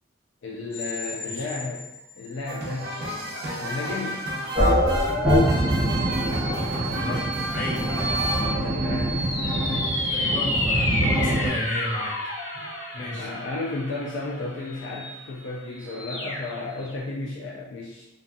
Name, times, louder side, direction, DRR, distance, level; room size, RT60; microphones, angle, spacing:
voice 1, 0.4-1.9 2.2-2.9 3.6-4.2 8.6-10.2 13.0-18.0, left 3 dB, 65° left, -3 dB, 0.3 m, -33 dB
sound 1, 0.7-2.7 3.2-3.3 5.3-17.0, left 1 dB, 85° left, 0.9 m, -32 dB
sound 2, 2.5-8.5, right 1 dB, 50° right, 0.5 m, -33 dB
sound 3, 4.6-11.5, equal, 20° right, 0.8 m, -24 dB
voice 2, 6.5-8.3 10.1-12.2 12.5-12.7 12.9-13.3, left 1 dB, 40° left, -5 dB, 0.7 m, -33 dB
2.5 x 2.3 x 2.5 m, 0.94 s
head